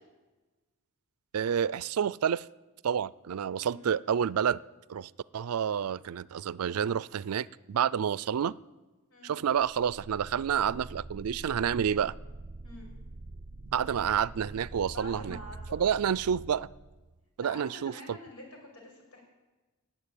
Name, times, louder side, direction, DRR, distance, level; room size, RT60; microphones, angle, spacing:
voice 1, 1.3-2.5 2.8-4.6 4.9-8.5 9.2-12.1 13.7-15.4 15.7-16.7 17.4-18.2, right 8 dB, 85° right, 21 dB, 0.4 m, -29 dB
voice 2, 3.5-3.9 9.1-9.4 12.6-12.9 14.7-16.2 17.4-19.2, left 1 dB, 90° left, 0 dB, 5.8 m, -47 dB
sound 1, 9.6-17.2, right 2 dB, 35° right, 0.7 m, -45 dB
19.0 x 7.5 x 8.3 m, 1.2 s
head